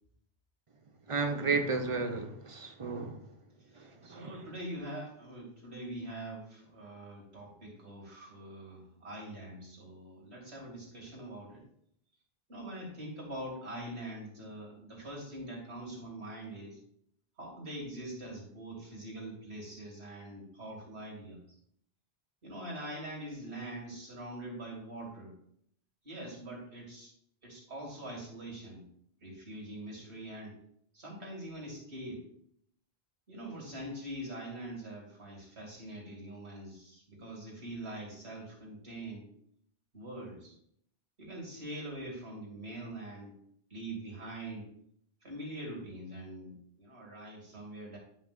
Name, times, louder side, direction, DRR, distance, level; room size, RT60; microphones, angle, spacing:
voice 1, 1.1-3.2 4.1-4.3, right 4 dB, 35° right, 0.7 m, -32 dB
voice 2, 3.7-11.6 12.5-16.8 17.4-21.4 22.4-25.3 26.0-27.1 27.4-28.9 29.2-30.6 30.9-32.2 33.3-39.3 39.9-40.5 41.2-43.3 43.7-44.7 45.2-48.0, right 1 dB, 80° right, 2.8 m, -43 dB
10.5 x 5.7 x 2.6 m
omnidirectional pair, 1.1 m